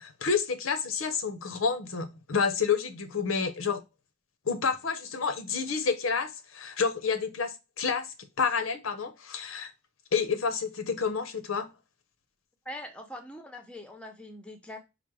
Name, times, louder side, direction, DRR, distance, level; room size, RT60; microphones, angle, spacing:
voice 1, 0.0-3.8 4.5-8.1 8.4-9.7 10.1-11.7, left 5 dB, 85° left, 0.7 m, -29 dB
voice 2, 12.7-14.8, left 1 dB, 5° left, 0.6 m, -42 dB
5.0 x 2.1 x 4.6 m
head